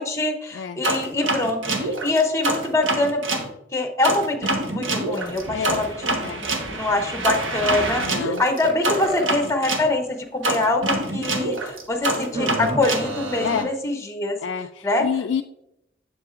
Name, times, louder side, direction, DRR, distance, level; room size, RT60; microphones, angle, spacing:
voice 1, 0.0-3.4 3.7-14.4 14.8-15.0, left 2 dB, 15° left, 4 dB, 0.8 m, -24 dB
sound 1, 0.8-3.5 4.0-9.9 10.4-13.6, right 2 dB, 75° right, 1.2 m, -26 dB
voice 2, 8.0-8.4 13.4-13.7 14.4-15.4, left 7 dB, 65° left, 6 dB, 0.3 m, -28 dB
sound 2, 8.6-9.3 10.2-10.3 10.6-10.7 12.2-12.8, right 1 dB, 25° right, 0.8 m, -28 dB
7.6 x 7.4 x 2.5 m, 0.81 s
head